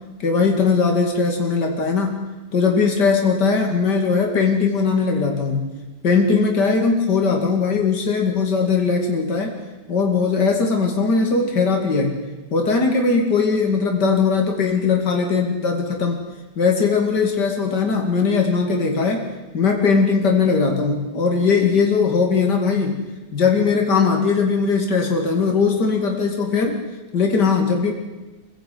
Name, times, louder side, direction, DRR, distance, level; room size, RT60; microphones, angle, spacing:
voice 1, 0.2-2.2 2.5-5.7 6.0-9.6 9.9-12.2 12.5-16.2 16.6-19.3 19.5-23.0 23.3-26.8 27.1-27.9, left 4 dB, 75° left, 2 dB, 3.3 m, -19 dB
26.5 x 16.0 x 9.6 m, 1.2 s
omnidirectional pair, 1.8 m